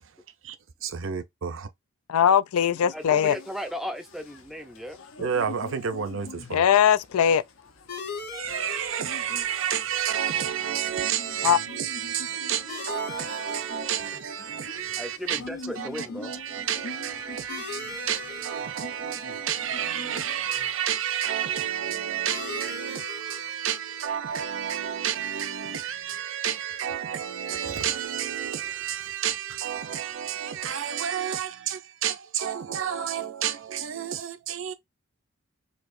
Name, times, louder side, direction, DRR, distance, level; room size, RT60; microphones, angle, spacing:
voice 1, 0.8-1.7 5.2-6.6 8.3-15.4 15.8-34.7, right 9 dB, 60° right, 0.5 m, -30 dB
voice 2, 2.1-3.4 6.5-7.4 11.4-11.6, left 8 dB, 80° left, 0.3 m, -20 dB
sound 1, 2.7-20.8, left 3 dB, 65° left, 0.7 m, -45 dB
voice 3, 2.9-5.0 15.0-16.3, equal, ahead, 0.4 m, -36 dB
sound 2, 7.9-27.0, left 4 dB, 45° left, 1.1 m, -44 dB
4.3 x 2.8 x 2.6 m
head